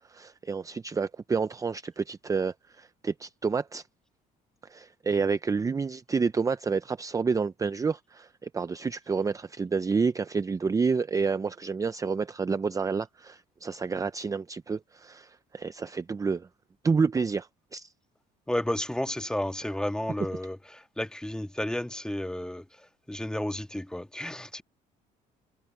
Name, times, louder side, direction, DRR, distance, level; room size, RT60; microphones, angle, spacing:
voice 1, 0.1-3.8 4.7-16.5 16.8-17.9, right 5 dB, 20° right, 0.5 m, -29 dB
voice 2, 18.5-22.6 23.1-24.6, left 1 dB, 5° left, 1.6 m, -32 dB
cardioid pair, 110°, 17 cm